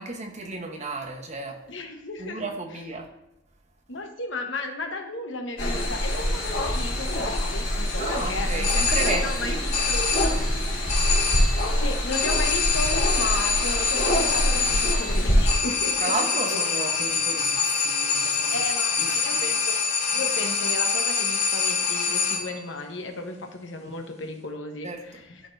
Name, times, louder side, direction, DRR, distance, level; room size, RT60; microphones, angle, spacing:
voice 1, 0.0-1.6 2.2-3.1 8.0-9.6 16.0-18.5 19.0-19.6 24.8-25.2, right 2 dB, 40° right, 2 dB, 1.0 m, -33 dB
voice 2, 1.7-2.5 3.9-10.6 11.7-16.6 18.5-19.8 20.1-25.4, left 2 dB, 75° left, 4 dB, 1.1 m, -34 dB
sound 1, 5.6-15.5, equal, 60° left, 2.5 m, -25 dB
sound 2, 8.6-9.4 9.7-10.5 10.9-11.7 12.1-22.6, left 5 dB, 35° left, 0.9 m, -25 dB
12.0 x 4.4 x 2.6 m, 0.89 s
head